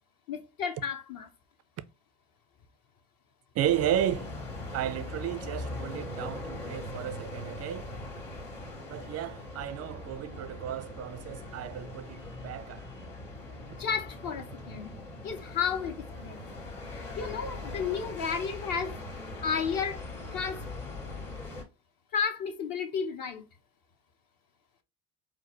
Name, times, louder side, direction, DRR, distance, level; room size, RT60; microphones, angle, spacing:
voice 1, 0.3-1.3 13.8-14.9 15.2-16.4 16.9-19.0 19.4-20.0 20.3-20.6 22.1-23.4, left 6 dB, 45° left, 0.9 m, -32 dB
voice 2, 3.5-4.3 4.7-7.9 8.9-12.9, right 11 dB, 35° right, 0.4 m, -33 dB
sound 1, 3.6-21.6, left 2 dB, 80° left, 1.8 m, -41 dB
4.8 x 2.0 x 2.9 m
hypercardioid pair, 70°, 47 cm